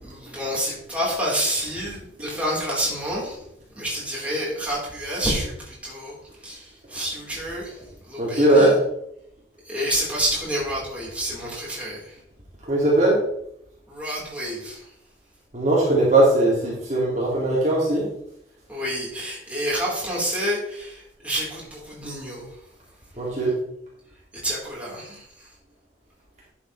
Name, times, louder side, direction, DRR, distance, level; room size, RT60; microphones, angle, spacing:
voice 1, 0.0-3.4 3.8-8.8 9.6-12.2 13.9-14.9 18.7-22.6 24.3-25.5, equal, 10° right, -6 dB, 4.1 m, -29 dB
voice 2, 8.2-8.7 12.7-13.2 15.5-18.1 23.2-23.5, right 2 dB, 40° right, -5 dB, 2.5 m, -19 dB
11.0 x 7.6 x 3.3 m, 0.76 s
head